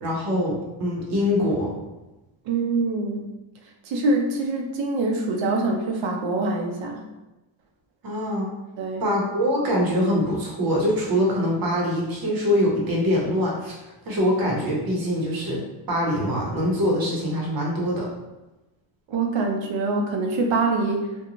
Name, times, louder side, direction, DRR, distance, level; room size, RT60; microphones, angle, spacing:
voice 1, 0.0-1.7 8.0-8.5 9.0-15.6 15.9-18.1, equal, 50° right, -3 dB, 0.9 m, -24 dB
voice 2, 2.4-3.3 3.8-7.0 8.8-9.1 19.1-21.2, right 3 dB, 70° right, 2 dB, 0.6 m, -24 dB
2.5 x 2.2 x 3.0 m, 1.0 s
cardioid pair, 150°, 47 cm